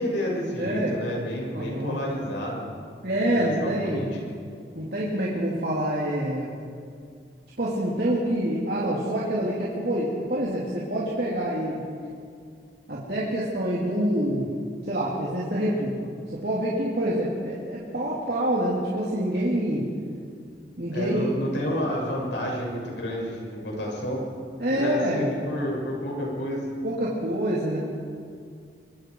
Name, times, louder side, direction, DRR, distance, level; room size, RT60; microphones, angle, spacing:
voice 1, 0.0-2.7 3.4-4.2 20.9-24.2 24.7-26.7, equal, 90° left, -2 dB, 6.7 m, -30 dB
voice 2, 0.6-0.9 1.5-2.0 3.0-4.1 4.7-6.5 7.6-11.8 12.9-14.5 14.9-19.9 20.8-21.4 24.6-25.3 26.8-27.8, right 1 dB, 60° right, -6 dB, 3.2 m, -26 dB
24.5 x 23.0 x 4.8 m, 2.2 s
head